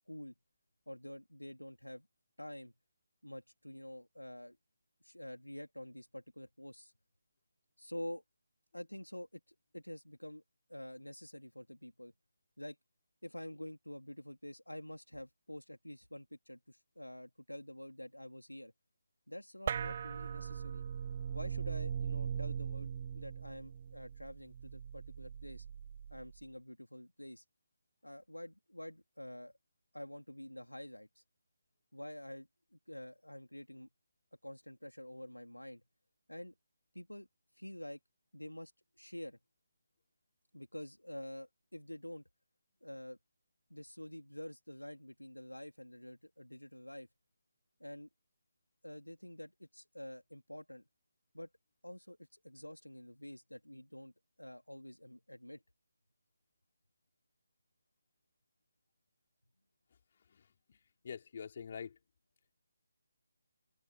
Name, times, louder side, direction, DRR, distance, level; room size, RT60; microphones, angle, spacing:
voice 1, 0.9-2.1 2.4-2.7 3.2-4.6 5.0-6.9 7.8-8.2 8.7-10.4 10.7-12.1 12.6-12.8 13.2-18.7 19.3-20.8 21.3-25.7 26.1-27.4 28.0-29.5 29.9-31.2 31.9-33.9 34.4-35.8 36.3-36.5 36.9-37.3 37.6-38.0 38.3-39.4 40.5-42.2 42.8-43.2 43.7-47.1 47.8-48.1 48.8-50.8 51.3-51.5 51.8-54.1 54.4-55.6, left 1 dB, 90° left, 3.0 m, -48 dB
sound 1, 19.7-26.4, right 8 dB, 35° right, 0.8 m, -40 dB
voice 2, 60.3-62.0, left 7 dB, 40° left, 4.2 m, -47 dB
figure-of-eight pair, 150°, 0 cm